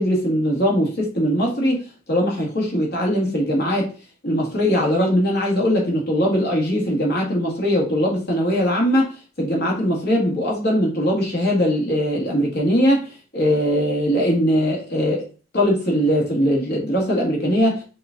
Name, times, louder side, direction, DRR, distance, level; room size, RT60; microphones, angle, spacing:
voice 1, 0.0-3.9 4.2-9.1 9.4-15.2 15.5-17.8, equal, 50° left, -1 dB, 1.5 m, -20 dB
5.8 x 2.4 x 3.7 m, 0.37 s
head